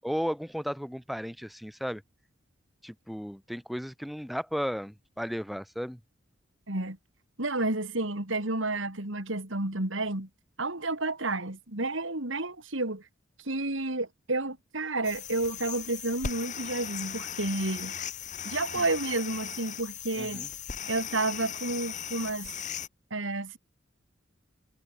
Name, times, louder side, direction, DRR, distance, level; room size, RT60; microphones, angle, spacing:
voice 1, 0.0-2.0 2.8-6.0 18.7-18.8 20.2-20.5, equal, ahead, 3.2 m, -34 dB
voice 2, 6.7-7.0 7.4-10.3 10.6-13.0 13.5-17.9 18.5-20.5 20.9-22.5 23.1-23.6, right 2 dB, 75° right, 3.5 m, -31 dB
sound 1, 15.0-22.9, left 8 dB, 40° left, 1.2 m, -38 dB
head